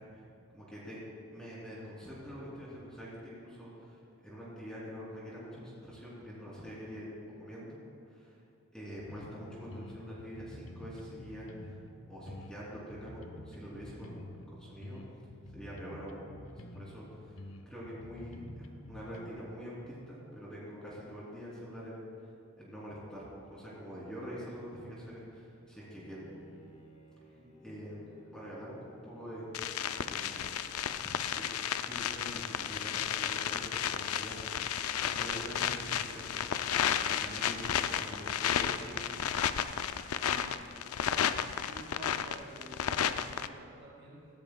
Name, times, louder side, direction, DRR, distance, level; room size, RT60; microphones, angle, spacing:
voice 1, 0.5-1.0 1.3-8.4 8.7-11.8 12.1-15.0 15.5-16.2 16.6-22.1 22.6-26.2 27.6-28.0 28.3-29.4 30.1-30.4 30.9-31.4 31.8-34.6 35.0-36.6 37.0-39.8, equal, 5° left, -7 dB, 3.1 m, -45 dB
sound 1, 9.1-9.4 9.7-11.9 12.3-14.5 14.8-17.0 17.4-19.3, left 1 dB, 65° left, 0.8 m, -48 dB
Bowed string instrument, 25.8-30.5, equal, 30° left, 1.1 m, -58 dB
sound 2, 29.5-43.5, left 9 dB, 90° left, 0.5 m, -33 dB
voice 2, 40.1-40.9 41.5-44.3, equal, 55° right, -5 dB, 3.5 m, -51 dB
17.5 x 15.5 x 2.3 m, 2.5 s
head